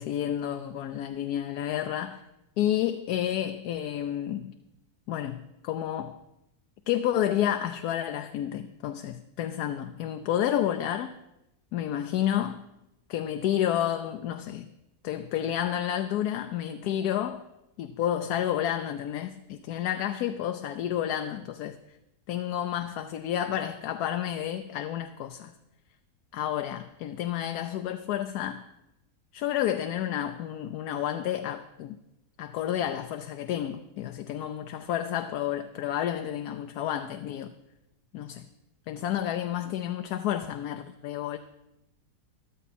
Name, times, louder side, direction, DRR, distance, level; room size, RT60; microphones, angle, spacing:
voice 1, 0.0-2.2 2.6-4.5 5.1-6.2 6.9-11.1 11.7-12.6 13.1-14.7 15.0-17.4 17.8-21.8 22.3-25.5 26.3-28.6 29.3-32.0 32.4-37.5 38.1-38.5 38.9-41.4, left 11 dB, 75° left, 1.1 m, -30 dB
13.5 x 13.0 x 4.2 m
omnidirectional pair, 1.7 m